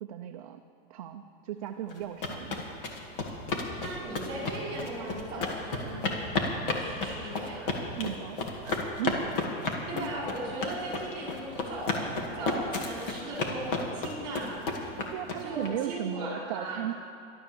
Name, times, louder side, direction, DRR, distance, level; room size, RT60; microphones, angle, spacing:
voice 1, 0.0-0.6 0.9-2.8 8.0-8.4 8.6-9.3 15.1-16.9, right 11 dB, 35° right, 5 dB, 0.4 m, -36 dB
sound 1, 1.9-15.7, left 3 dB, 60° left, 2.1 m, -32 dB
voice 2, 3.8-6.0 6.8-7.7 9.9-14.6 15.4-16.8, right 1 dB, 15° right, -5 dB, 4.3 m, -37 dB
13.0 x 12.0 x 6.9 m, 2.5 s
supercardioid pair, 175°, 31 cm